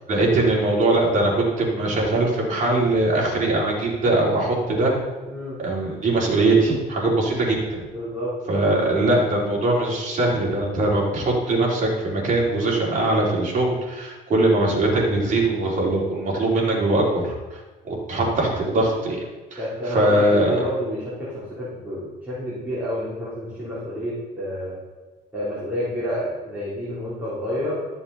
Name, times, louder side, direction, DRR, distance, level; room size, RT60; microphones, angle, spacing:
voice 1, 0.1-5.0 5.6-7.8 8.5-19.2 19.5-19.6 19.9-20.6, right 2 dB, 50° right, -4 dB, 3.9 m, -21 dB
voice 2, 5.3-5.6 7.9-8.8 18.2-18.4 19.6-24.7 25.3-27.9, equal, 10° right, -10 dB, 3.9 m, -29 dB
14.0 x 7.0 x 4.2 m, 1.2 s
cardioid pair, 110°, 17 cm